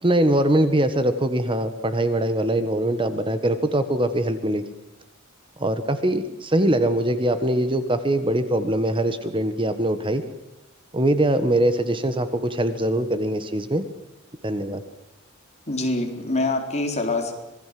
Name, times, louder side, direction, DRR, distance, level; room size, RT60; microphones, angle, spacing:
voice 1, 0.0-4.6 5.6-10.2 10.9-13.9 14.4-14.8, right 1 dB, 25° right, 10 dB, 1.4 m, -22 dB
voice 2, 15.7-17.3, left 2 dB, 35° left, 3 dB, 4.2 m, -25 dB
27.0 x 20.5 x 7.7 m, 0.92 s
head